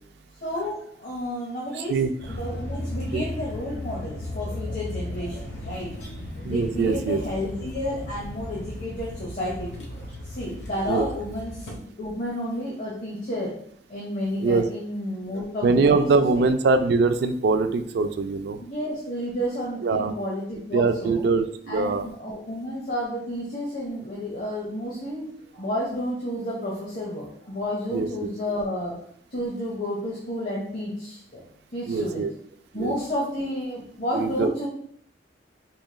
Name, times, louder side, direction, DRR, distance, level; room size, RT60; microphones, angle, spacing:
voice 1, 0.4-5.9 6.4-9.9 10.2-11.7 12.0-13.5 13.9-16.0 16.4-16.5 18.6-21.3 21.7-25.3 25.5-29.0 29.3-31.4 31.7-32.3 32.7-34.7, equal, 50° left, -4 dB, 0.9 m, -31 dB
sound 1, 2.2-11.8, left 1 dB, 80° left, 0.9 m, -35 dB
voice 2, 6.4-7.2 10.9-11.1 14.4-14.6 15.6-18.6 19.8-20.1 20.7-22.1 27.9-28.1 31.9-32.3 32.8-32.9 34.1-34.7, right 4 dB, 65° right, 9 dB, 0.3 m, -22 dB
4.8 x 3.0 x 2.2 m, 0.62 s
head